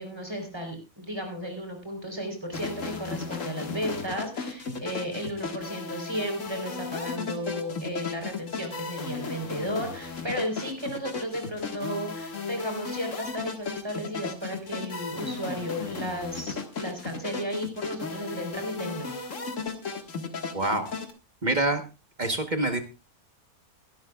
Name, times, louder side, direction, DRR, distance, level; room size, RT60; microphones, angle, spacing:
voice 1, 0.0-19.1, equal, 15° right, 3 dB, 3.9 m, -34 dB
sound 1, 2.5-21.1, left 4 dB, 60° left, 2.1 m, -35 dB
voice 2, 20.5-20.9 21.4-21.8 22.2-22.8, right 2 dB, 35° right, 7 dB, 1.3 m, -26 dB
22.0 x 12.0 x 2.4 m, 0.28 s
omnidirectional pair, 1.5 m